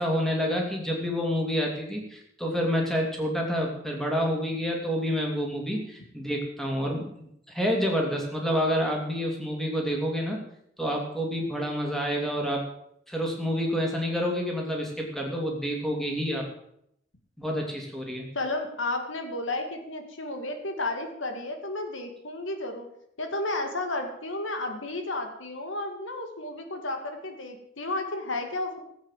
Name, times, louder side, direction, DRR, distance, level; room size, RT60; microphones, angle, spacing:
voice 1, 0.0-10.4 10.8-12.6 13.1-16.5 17.4-18.3, equal, ahead, 0 dB, 2.9 m, -28 dB
voice 2, 18.3-22.9 23.2-28.8, left 2 dB, 70° left, 5 dB, 2.2 m, -32 dB
17.5 x 8.5 x 7.5 m, 0.74 s
head